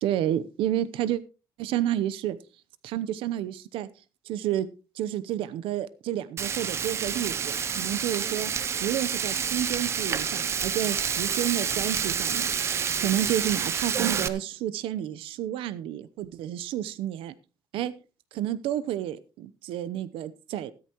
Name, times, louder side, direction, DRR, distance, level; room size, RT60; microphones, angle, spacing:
voice 1, 0.0-1.2 1.6-2.4 2.8-3.9 4.3-4.7 5.0-8.5 8.8-17.3 17.7-17.9 18.3-20.7, right 12 dB, 80° right, 0.8 m, -30 dB
Frying (food), 6.4-14.3, right 7 dB, 30° right, 0.7 m, -28 dB
14.0 x 13.0 x 3.0 m
cardioid pair, 180°, 9 cm